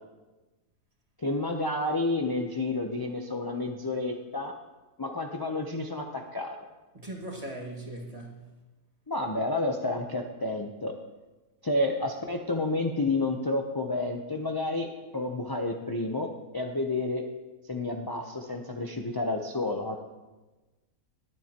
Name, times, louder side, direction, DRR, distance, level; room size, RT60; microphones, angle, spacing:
voice 1, 1.2-4.5 5.0-6.6 9.1-10.9 11.6-17.2 17.7-20.0, left 2 dB, 30° left, 2 dB, 0.4 m, -30 dB
voice 2, 6.9-8.5, right 1 dB, 25° right, -2 dB, 1.8 m, -39 dB
21.5 x 7.7 x 2.9 m, 1.2 s
omnidirectional pair, 1.6 m